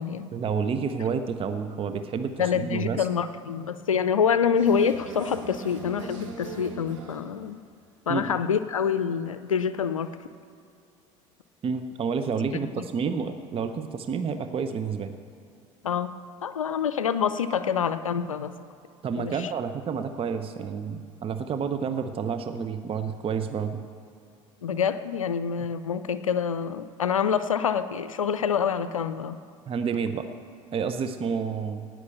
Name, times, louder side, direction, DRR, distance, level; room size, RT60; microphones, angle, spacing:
voice 1, 0.3-3.0 8.1-8.4 11.6-15.1 19.0-23.8 29.7-30.3 30.7-31.8, right 6 dB, 35° right, 8 dB, 0.9 m, -29 dB
voice 2, 2.4-7.6 8.1-10.1 12.5-12.6 15.8-16.1 16.4-18.5 19.2-19.5 24.6-29.4, left 7 dB, 85° left, 12 dB, 0.5 m, -26 dB
sound 1, 4.5-7.5 10.0-10.1, right 2 dB, 70° right, 2.1 m, -39 dB
18.0 x 6.2 x 8.0 m, 2.5 s
figure-of-eight pair, 65°, 17 cm